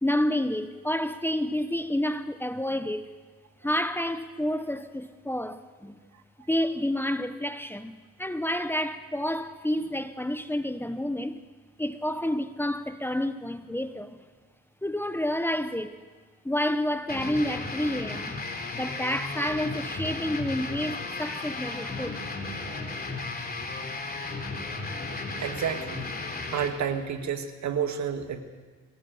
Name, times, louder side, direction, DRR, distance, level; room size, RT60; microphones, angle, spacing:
voice 1, 0.0-3.1 3.6-6.0 6.5-11.4 11.8-14.2 14.8-16.0 16.4-18.4 18.7-22.2, left 1 dB, 5° left, 1.0 m, -29 dB
sound 1, 17.1-26.7, left 3 dB, 30° left, 3.4 m, -34 dB
voice 2, 25.4-26.1 26.5-28.4, right 7 dB, 65° right, 1.9 m, -30 dB
23.0 x 17.0 x 7.9 m
cardioid pair, 90°, 30 cm